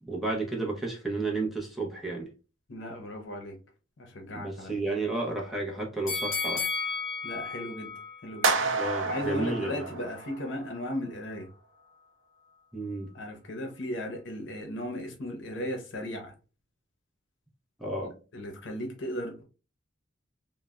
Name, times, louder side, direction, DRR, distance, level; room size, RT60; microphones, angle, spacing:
voice 1, 0.0-2.3 4.3-6.7 8.6-10.0 12.7-13.1 17.8-18.1, right 2 dB, ahead, 0.6 m, -32 dB
voice 2, 2.7-3.5 4.0-4.8 7.2-7.9 8.2-8.5 9.0-11.5 13.1-16.3 18.0-19.4, left 1 dB, 65° left, 0.7 m, -36 dB
sound 1, 6.1-9.2 9.6-9.7, left 4 dB, 45° left, 1.1 m, -34 dB
sound 2, 8.4-10.7, right 4 dB, 75° right, 0.4 m, -29 dB
3.2 x 2.1 x 2.3 m
head